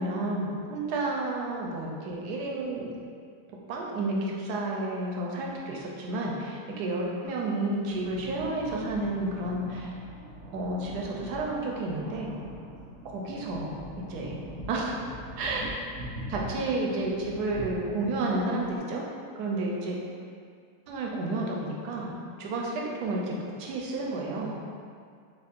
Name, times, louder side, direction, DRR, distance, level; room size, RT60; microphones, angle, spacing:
voice 1, 0.0-2.9 3.7-9.9 10.5-12.4 13.0-14.9 15.4-15.7 16.3-19.0 19.4-20.0 20.9-23.3 23.6-24.6, right 2 dB, 75° right, -2 dB, 1.1 m, -31 dB
sound 1, 7.8-18.8, equal, 45° left, 1.2 m, -43 dB
5.1 x 2.3 x 2.5 m, 2.2 s
omnidirectional pair, 1.8 m